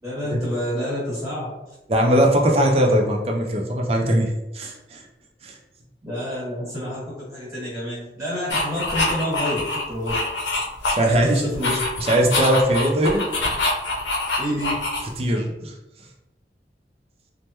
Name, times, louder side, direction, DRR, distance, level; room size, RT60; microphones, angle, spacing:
voice 1, 0.0-1.5 6.0-10.1 11.0-11.8 14.4-14.8, equal, 15° right, -8 dB, 1.3 m, -29 dB
voice 2, 1.9-5.0 5.4-5.5 10.9-11.7 12.0-13.2 15.2-15.7, right 1 dB, 35° right, 0 dB, 0.4 m, -20 dB
sound 1, 8.5-11.2 11.5-15.3, left 2 dB, 85° left, 0.6 m, -25 dB
3.3 x 2.1 x 2.9 m, 0.97 s
head